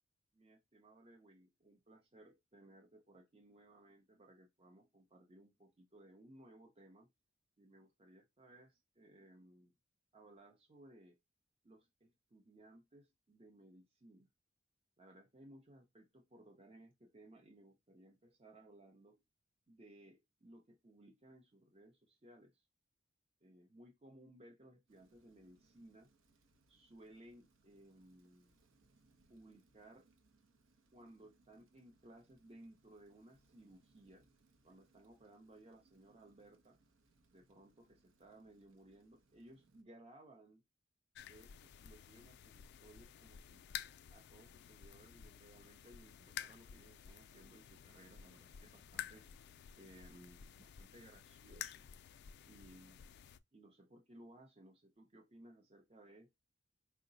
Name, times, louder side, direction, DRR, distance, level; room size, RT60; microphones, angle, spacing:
voice 1, 0.3-7.1 7.6-9.7 10.1-11.2 11.6-14.3 15.0-19.2 19.7-22.6 23.4-26.1 26.7-28.6 29.3-30.1 30.9-34.3 34.6-36.8 37.3-40.6 41.3-43.6 44.1-51.9 52.5-53.0 53.5-56.4, right 1 dB, 30° right, 0.6 m, -61 dB
Rain, 24.9-39.8, right 2 dB, 80° right, 0.8 m, -74 dB
sound 1, 41.1-53.4, left 10 dB, 60° left, 0.3 m, -52 dB
4.6 x 2.1 x 3.8 m
head